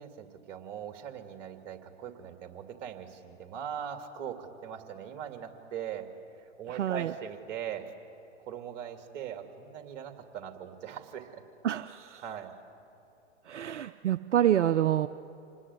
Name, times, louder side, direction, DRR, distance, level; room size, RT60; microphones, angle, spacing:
voice 1, 0.0-6.1 6.6-7.8 8.4-11.4 12.2-12.5, right 8 dB, 40° right, 6 dB, 2.6 m, -40 dB
voice 2, 6.7-7.1 11.6-12.2 13.5-15.1, right 11 dB, 75° right, 11 dB, 0.7 m, -27 dB
26.5 x 19.0 x 9.7 m, 2.8 s
hypercardioid pair, 120°, 36 cm